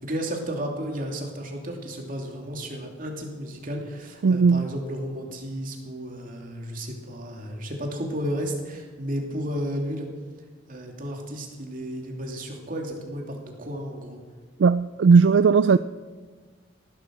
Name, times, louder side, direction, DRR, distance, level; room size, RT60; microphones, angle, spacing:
voice 1, 0.0-10.1 10.7-14.2, equal, 50° right, 2.8 m, -33 dB
voice 2, 4.2-4.7 14.6-15.8, right 5 dB, 70° right, 0.4 m, -17 dB
18.5 x 11.5 x 6.4 m
head